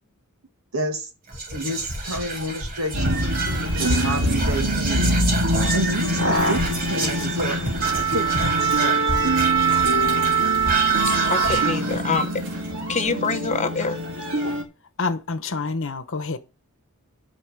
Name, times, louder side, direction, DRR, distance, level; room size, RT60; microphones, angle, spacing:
voice 1, 0.7-1.1 1.5-3.2 3.8-5.2 5.7-9.0, right 1 dB, 70° right, 2.3 m, -29 dB
Whispering, 1.3-13.8, right 2 dB, 45° right, 2.4 m, -29 dB
sound 1, 2.9-14.6, right 3 dB, 90° right, 2.6 m, -23 dB
voice 2, 11.3-12.3 12.9-14.0, left 4 dB, 35° left, 1.0 m, -25 dB
voice 3, 15.0-16.4, left 3 dB, 60° left, 1.1 m, -27 dB
11.0 x 4.4 x 7.2 m
head